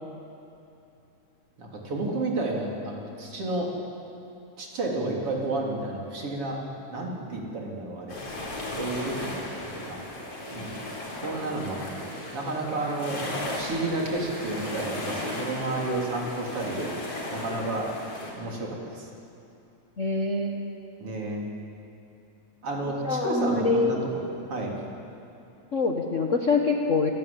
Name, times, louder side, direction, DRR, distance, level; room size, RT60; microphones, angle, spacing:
voice 1, 1.6-3.7 4.6-6.6 6.9-8.2 8.8-10.0 10.5-10.7 11.2-13.2 13.5-16.9 17.3-17.9 18.4-19.1 21.0-21.5 22.6-24.2 24.5-24.8, right 2 dB, 45° right, -2 dB, 4.4 m, -31 dB
sound 1, 8.1-18.3, left 1 dB, 45° left, 5.0 m, -36 dB
voice 2, 20.0-20.7 23.0-24.0 25.7-27.1, left 3 dB, 75° left, 1 dB, 0.7 m, -25 dB
27.0 x 18.5 x 8.7 m, 2.7 s
omnidirectional pair, 3.7 m